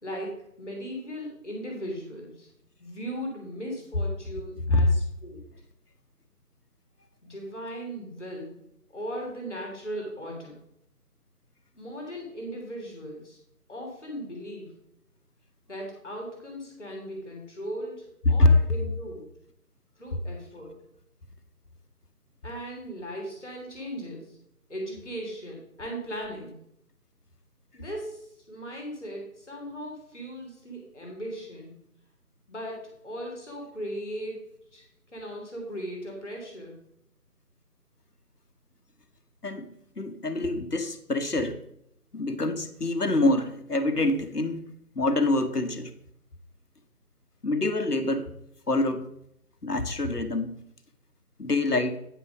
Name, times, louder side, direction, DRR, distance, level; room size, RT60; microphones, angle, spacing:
voice 1, 0.0-2.5 2.8-5.5 7.2-8.6 8.9-10.5 11.8-13.4 13.7-14.7 15.7-19.3 20.0-20.8 22.4-24.4 24.7-26.6 27.7-31.7 32.5-36.8, equal, ahead, -35 dB, 1.3 m, -38 dB
voice 2, 40.0-41.6 42.1-44.7 44.9-45.9 47.4-48.3 48.7-49.1 49.6-50.6 51.4-52.0, left 2 dB, 80° left, 8 dB, 1.3 m, -25 dB
9.1 x 6.1 x 5.0 m, 0.76 s
figure-of-eight pair, 160°, 46 cm